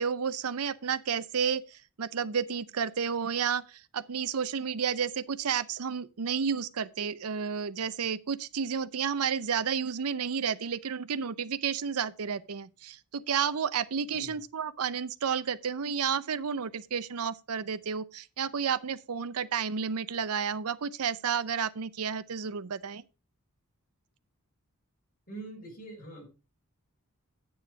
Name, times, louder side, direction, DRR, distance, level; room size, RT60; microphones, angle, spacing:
voice 1, 0.0-23.0, right 6 dB, 75° right, 0.6 m, -31 dB
voice 2, 25.3-26.2, right 2 dB, 40° left, 4.5 m, -43 dB
8.9 x 7.1 x 4.8 m
head